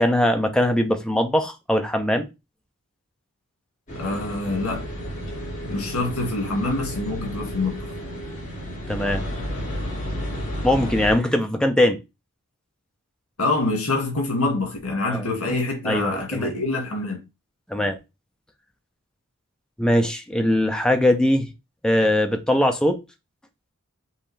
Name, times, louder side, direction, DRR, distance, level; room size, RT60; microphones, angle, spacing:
voice 1, 0.0-2.3 8.9-9.3 10.6-12.0 15.1-15.4 15.8-16.5 17.7-18.0 19.8-21.5 21.8-23.0, left 1 dB, 5° left, 0.6 m, -21 dB
sound 1, 3.9-11.1, equal, 35° left, 2.4 m, -32 dB
voice 2, 4.0-4.9 5.7-7.9 13.4-17.2, left 2 dB, 85° left, 2.1 m, -25 dB
5.5 x 2.9 x 3.3 m
head